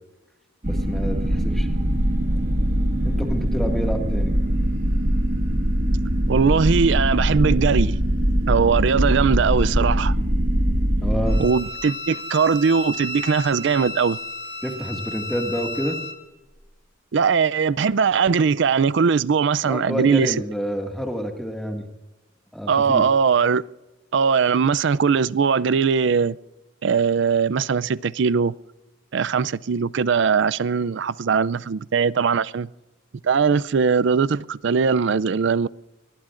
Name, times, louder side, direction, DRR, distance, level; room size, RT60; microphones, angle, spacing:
sound 1, 0.6-11.4, equal, 40° right, 1.5 m, -22 dB
voice 1, 0.7-1.7 3.0-4.3 11.0-11.4 14.6-16.0 19.6-21.8 22.5-23.0, equal, ahead, 2.0 m, -28 dB
voice 2, 6.3-8.0 8.5-10.1 11.4-14.2 17.1-20.3 22.7-23.6 24.1-26.4 26.8-28.5 29.1-32.7 33.2-35.7, right 5 dB, 60° right, 0.4 m, -20 dB
Bowed string instrument, 11.3-16.2, left 2 dB, 50° left, 2.2 m, -33 dB
24.0 x 21.0 x 2.5 m
head